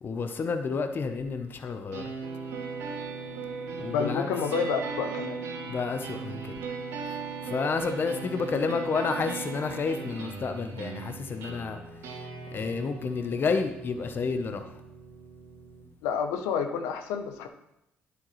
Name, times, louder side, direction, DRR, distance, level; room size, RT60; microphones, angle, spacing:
voice 1, 0.0-2.1 3.8-4.3 5.7-6.5 7.4-11.8 12.5-14.7, left 5 dB, 45° left, 7 dB, 0.8 m, -30 dB
sound 1, 1.9-15.9, right 5 dB, 80° right, 3.1 m, -38 dB
voice 2, 3.9-5.4 16.0-17.5, left 6 dB, 85° left, 7 dB, 0.7 m, -29 dB
9.8 x 8.1 x 3.2 m, 0.86 s
supercardioid pair, 65°, 5 cm